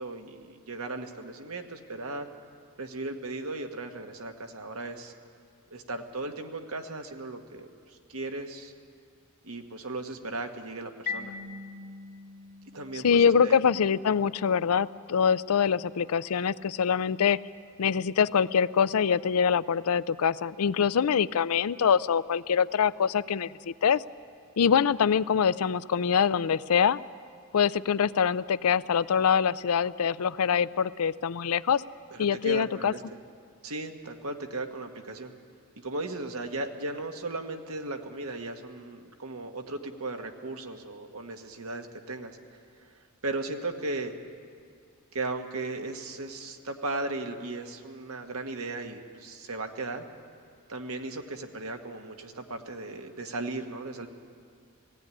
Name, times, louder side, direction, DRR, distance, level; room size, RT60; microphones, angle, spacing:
voice 1, 0.0-2.3 2.8-5.1 5.7-7.7 8.1-8.7 9.4-11.4 12.7-13.6 32.1-33.2 33.6-35.3 35.8-42.3 42.8-42.9 43.2-44.1 45.1-50.0 50.7-54.1, right 2 dB, 75° right, 4 dB, 1.5 m, -36 dB
Marimba xylophone, 11.1-13.7, left 5 dB, 40° left, 2.7 m, -40 dB
voice 2, 13.0-17.4 17.8-24.0 24.6-27.0 27.5-31.8 32.2-32.9, left 7 dB, 75° left, 17 dB, 0.4 m, -24 dB
17.0 x 17.0 x 9.8 m, 2.2 s
head